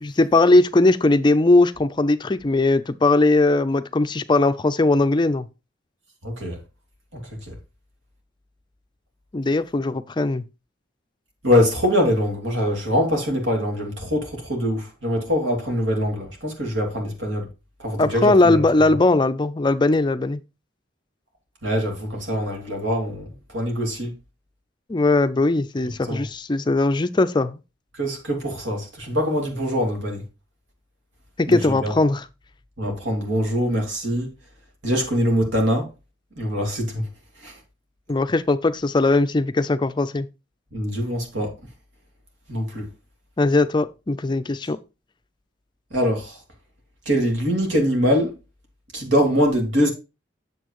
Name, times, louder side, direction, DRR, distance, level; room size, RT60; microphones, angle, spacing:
voice 1, 0.0-5.5 9.3-10.4 18.0-20.4 24.9-27.6 31.4-32.3 38.1-40.3 43.4-44.8, left 2 dB, 25° left, 0.4 m, -19 dB
voice 2, 6.2-6.6 7.1-7.5 11.4-17.5 17.8-18.6 21.6-24.1 26.1-26.2 27.9-30.2 31.5-31.9 32.8-34.3 34.8-35.9 36.4-37.1 37.4-37.5 40.7-41.5 42.5-42.9 45.9-46.4 47.1-48.3 48.9-49.9, equal, 75° right, 2.7 m, -23 dB
8.3 x 6.9 x 3.0 m
head